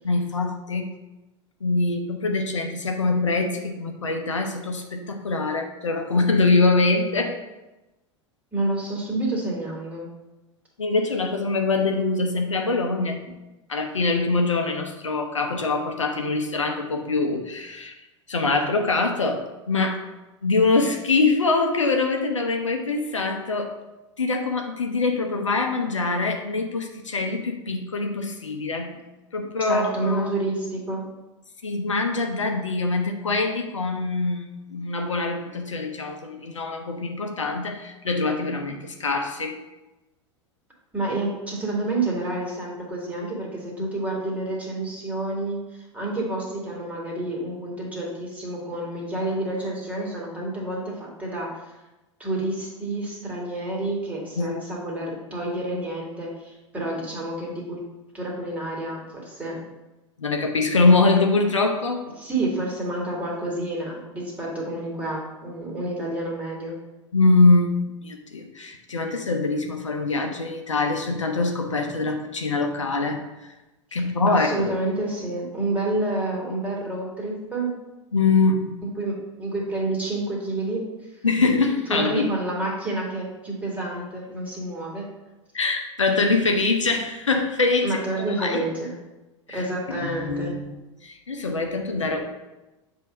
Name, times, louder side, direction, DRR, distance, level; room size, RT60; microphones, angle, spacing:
voice 1, 0.0-0.9 1.6-7.4 10.8-13.2 13.7-17.9 18.3-20.0 20.4-23.7 24.2-28.9 29.3-30.3 31.6-39.6 43.8-43.9 54.4-54.6 60.2-62.1 67.1-73.5 73.9-74.6 78.1-78.7 81.2-82.3 85.5-88.0 88.4-88.7 89.5-89.6 89.9-90.7 91.0-92.3, left 3 dB, 75° left, 3 dB, 0.7 m, -23 dB
voice 2, 8.5-10.1 13.2-13.3 29.6-31.0 40.9-51.7 52.2-57.8 58.1-59.6 62.2-66.8 74.3-77.7 79.0-80.8 81.1-81.2 81.9-85.1 87.8-88.9 89.5-90.6, right 2 dB, 10° right, -3 dB, 2.0 m, -29 dB
7.2 x 2.8 x 5.4 m, 1.0 s
figure-of-eight pair, 85°, 16 cm